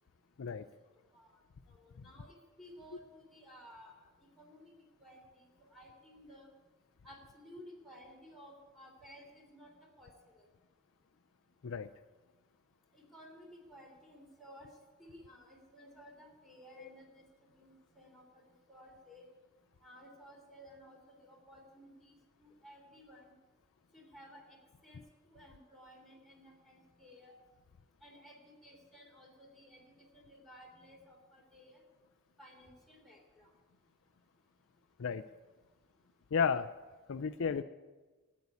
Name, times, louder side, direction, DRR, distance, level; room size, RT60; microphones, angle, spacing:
voice 1, 1.7-3.9 4.2-4.7 5.0-5.2 5.7-6.5 7.0-10.5 12.9-14.7 15.0-18.2 18.7-19.2 19.8-23.2 23.9-24.6 24.8-25.0 25.3-27.3 28.0-31.8 32.4-33.5, equal, ahead, -2 dB, 3.4 m, -56 dB
voice 2, 36.3-36.7 37.1-37.6, left 6 dB, 65° left, 12 dB, 0.5 m, -32 dB
14.0 x 8.5 x 9.6 m, 1.3 s
head